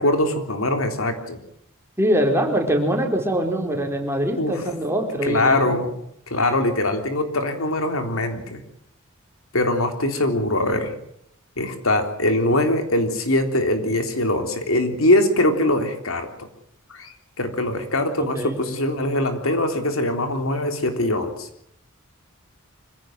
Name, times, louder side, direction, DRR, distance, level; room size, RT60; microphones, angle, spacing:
voice 1, 0.0-1.4 4.4-4.6 5.2-5.9 6.3-8.6 9.5-10.9 11.6-16.3 16.9-21.5, left 1 dB, 70° left, 6 dB, 3.6 m, -22 dB
voice 2, 2.0-5.8 18.3-18.6, equal, 10° right, 3 dB, 4.6 m, -23 dB
25.5 x 16.5 x 7.9 m, 0.74 s
head